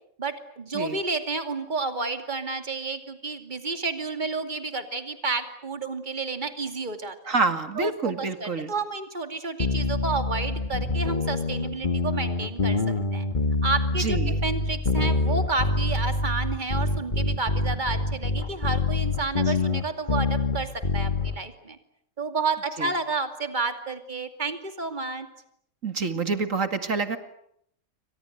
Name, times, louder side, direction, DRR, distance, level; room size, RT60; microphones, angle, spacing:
voice 1, 0.2-7.3 7.8-12.8 13.1-13.3 13.6-21.8 22.2-25.3, right 3 dB, 35° right, 7 dB, 2.6 m, -31 dB
voice 2, 7.3-8.7 14.0-14.4 19.5-19.6 22.8-22.9 25.8-27.2, right 4 dB, 70° right, 9 dB, 2.6 m, -27 dB
sound 1, 9.6-21.4, left 3 dB, 35° left, 1.9 m, -26 dB
29.0 x 25.5 x 8.1 m, 0.72 s
omnidirectional pair, 1.4 m